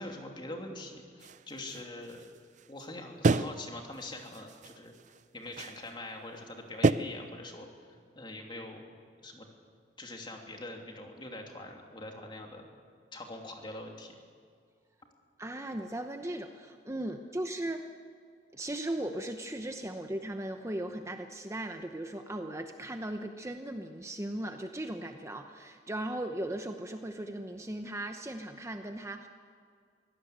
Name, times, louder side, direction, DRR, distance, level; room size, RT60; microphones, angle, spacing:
voice 1, 0.0-2.3 2.7-4.9 5.3-8.8 9.2-9.5 10.0-12.7 13.1-14.2, left 2 dB, 25° left, 2 dB, 2.9 m, -43 dB
sound 1, 1.2-2.9 3.2-3.7 4.0-5.2 5.5-5.9 6.8-6.9, right 3 dB, 45° right, 0.5 m, -30 dB
voice 2, 15.4-17.9 18.5-29.3, right 1 dB, 15° right, 5 dB, 0.9 m, -37 dB
24.0 x 17.0 x 8.0 m, 2.1 s
head